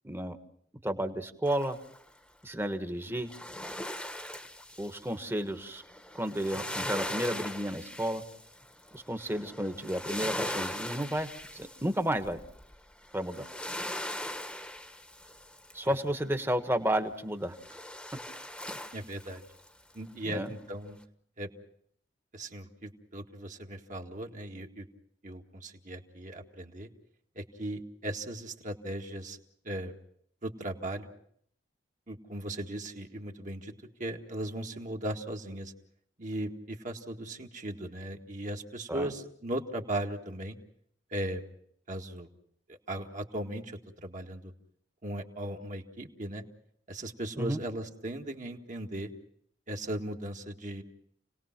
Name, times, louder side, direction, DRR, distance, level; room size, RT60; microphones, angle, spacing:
voice 1, 0.0-0.4 0.8-1.8 2.4-3.3 4.8-5.8 6.1-8.2 8.9-12.4 13.1-13.5 15.7-17.5 20.3-20.5 38.9-39.1 47.4-47.6, right 1 dB, 15° right, 8 dB, 1.4 m, -32 dB
sound 1, 1.5-2.1 3.2-16.0 17.6-19.7 20.1-20.2, left 1 dB, 5° left, 1.3 m, -40 dB
voice 2, 18.9-19.4 19.9-21.0 21.4-21.5 22.3-24.9 25.2-26.9 27.4-29.4 29.6-29.9 30.4-31.1 32.1-33.7 34.0-35.7 36.2-40.6 41.1-41.4 41.9-42.3 42.7-44.5 45.0-46.4 46.9-49.1 49.7-50.8, right 1 dB, 45° right, 2 dB, 1.9 m, -37 dB
29.0 x 19.0 x 6.0 m, 0.67 s
head